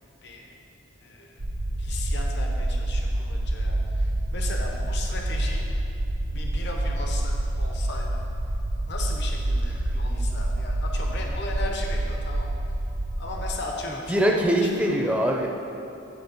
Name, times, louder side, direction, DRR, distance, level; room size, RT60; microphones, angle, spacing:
sound 1, 1.4-13.5, right 1 dB, 75° right, 0.8 m, -27 dB
voice 1, 1.8-4.1 4.3-5.6 6.3-8.1 8.9-12.5 13.2-14.4 14.8-15.1, left 2 dB, 60° left, 1 dB, 0.8 m, -36 dB
voice 2, 13.9-15.5, equal, 5° right, 0 dB, 0.6 m, -23 dB
9.8 x 3.7 x 5.4 m, 2.9 s
head